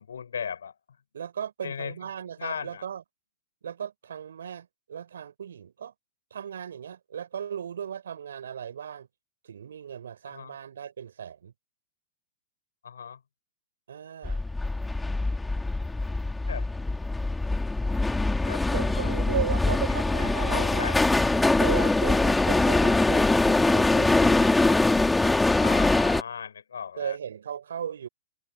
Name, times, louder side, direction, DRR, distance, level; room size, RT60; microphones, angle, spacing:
voice 1, 0.0-1.0 1.6-2.1 2.4-2.8 10.3-10.5 12.8-13.2 16.5-16.9 18.4-19.2 19.7-21.1 25.6-27.2, left 7 dB, 75° left, 6.6 m, -38 dB
voice 2, 1.1-3.0 3.6-5.9 6.3-9.1 9.4-11.5 13.9-14.4 18.7-21.0 21.6-24.5 27.0-28.1, right 8 dB, 75° right, 5.0 m, -36 dB
sound 1, 14.2-26.2, left 2 dB, 5° left, 2.2 m, -23 dB
hypercardioid pair, 105°, 0 cm